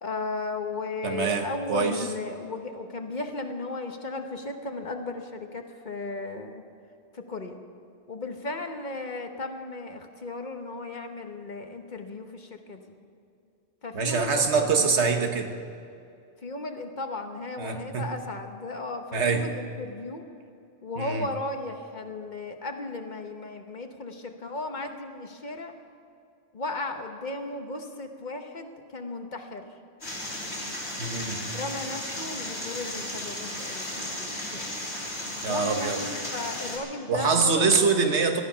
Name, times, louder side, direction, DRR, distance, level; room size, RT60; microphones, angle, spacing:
voice 1, 0.0-6.6 7.1-7.6 8.1-12.9 13.8-15.0 16.4-20.2 20.8-25.7 26.5-29.7 31.5-34.8 35.4-37.9, left 2 dB, 45° left, 5 dB, 1.2 m, -35 dB
voice 2, 1.0-2.1 13.9-15.5 17.6-18.1 19.1-19.4 21.0-21.3 31.0-31.4 35.4-36.0 37.1-38.4, right 4 dB, 90° right, 5 dB, 1.5 m, -24 dB
sound 1, 30.0-36.8, left 1 dB, 70° left, 3.7 m, -35 dB
18.5 x 13.0 x 5.7 m, 2.5 s
omnidirectional pair, 1.1 m